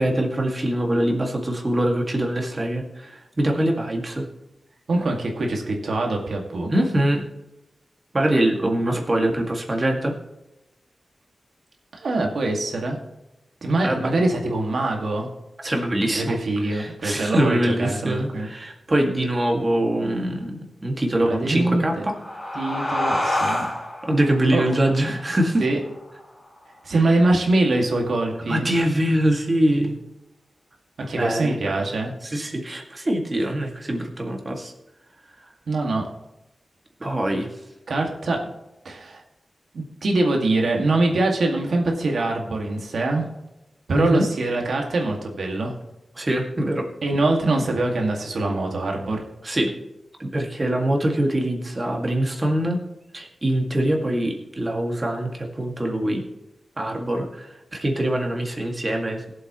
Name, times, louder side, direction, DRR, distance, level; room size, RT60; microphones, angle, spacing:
voice 1, 0.0-4.3 6.7-7.2 8.1-10.2 13.8-14.1 15.6-16.4 16.6-22.1 24.0-25.6 26.9-27.0 28.5-30.0 31.2-31.9 32.2-34.7 37.0-37.5 43.9-44.3 46.2-46.9 49.4-49.7 50.2-52.8 53.1-56.2 56.8-59.2, right 1 dB, 30° right, 1 dB, 2.0 m, -23 dB
voice 2, 4.9-6.7 11.9-13.0 13.6-15.3 16.1-18.5 21.3-21.9 22.5-23.7 24.5-24.6 25.1-25.2 25.6-25.8 26.8-28.7 31.0-32.1 35.7-36.1 37.9-38.4 38.8-39.2 39.7-43.3 43.9-45.7 47.0-49.2, right 2 dB, 80° right, 1 dB, 2.1 m, -23 dB
sound 1, 21.7-26.9, left 1 dB, 25° left, 4.0 m, -29 dB
21.0 x 7.7 x 3.1 m, 0.95 s
wide cardioid pair, 130°, 0 cm